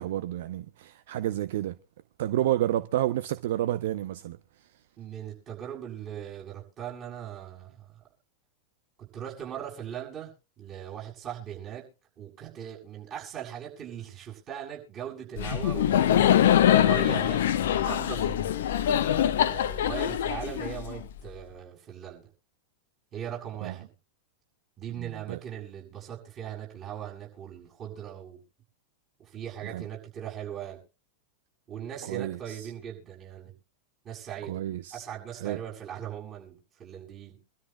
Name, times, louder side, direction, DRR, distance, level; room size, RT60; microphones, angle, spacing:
voice 1, 0.0-1.7 2.2-4.4 23.6-23.7 25.0-25.4 29.7-29.8 32.1-32.7 34.5-35.0 35.4-35.6, right 13 dB, 55° right, 0.7 m, -30 dB
voice 2, 5.0-7.9 9.0-11.9 12.2-18.6 19.1-22.3 23.1-23.9 24.8-28.4 29.2-30.8 31.7-33.5 34.0-34.6 34.9-37.4, right 10 dB, 30° right, 7.2 m, -40 dB
Laughter, 15.4-21.2, left 10 dB, 60° left, 0.9 m, -23 dB
26.0 x 13.0 x 2.2 m
figure-of-eight pair, 90°, 0 cm